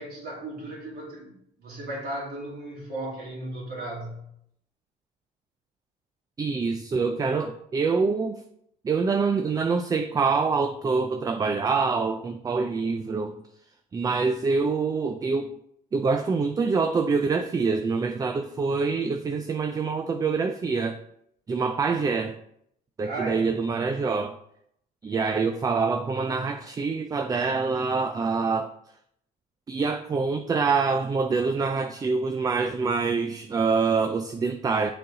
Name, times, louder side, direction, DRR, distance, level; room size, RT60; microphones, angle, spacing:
voice 1, 0.0-1.3 1.6-4.2 23.0-23.4, right 1 dB, 65° right, -5 dB, 2.5 m, -35 dB
voice 2, 6.4-8.4 8.8-13.3 13.9-15.5 15.9-21.0 21.5-22.4 23.0-24.4 25.0-28.7 29.7-34.9, right 4 dB, 20° right, 7 dB, 0.4 m, -25 dB
6.6 x 4.0 x 3.9 m, 0.72 s
cardioid pair, 110°, 17 cm